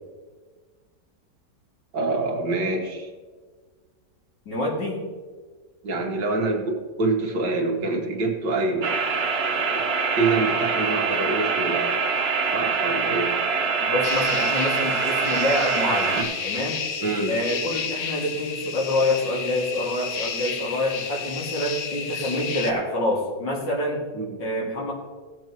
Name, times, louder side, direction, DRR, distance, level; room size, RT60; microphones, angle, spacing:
voice 1, 1.9-3.1 5.8-9.0 9.7-9.8 10.2-12.0 12.5-13.3 16.2-16.3 17.0-17.3 24.1-24.4, right 3 dB, 80° right, 1 dB, 2.1 m, -26 dB
voice 2, 4.5-5.0 13.8-16.8 17.3-24.0 24.4-24.9, left 1 dB, 80° left, -3 dB, 3.0 m, -26 dB
sound 1, 8.8-16.2, right 5 dB, 50° right, 0.8 m, -24 dB
sound 2, 14.0-22.7, left 6 dB, 55° left, 1.0 m, -32 dB
17.5 x 7.9 x 3.0 m, 1.5 s
omnidirectional pair, 1.9 m